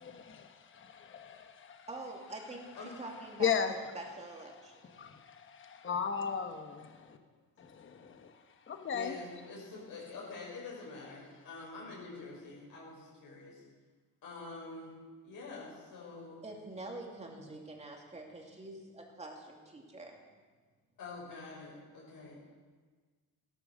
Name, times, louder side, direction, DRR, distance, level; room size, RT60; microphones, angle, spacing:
voice 1, 0.0-1.9 3.4-3.7 4.9-7.2 7.6-8.3 8.7-9.2, left 7 dB, 30° left, 6 dB, 1.1 m, -36 dB
voice 2, 1.9-5.0 16.4-20.2, right 2 dB, 15° right, 1 dB, 2.4 m, -46 dB
voice 3, 8.9-13.6 14.2-14.9 15.2-16.4 21.0-22.4, left 3 dB, 60° left, -4 dB, 5.3 m, -46 dB
16.5 x 12.5 x 6.4 m, 1.4 s
cardioid pair, 170°, 39 cm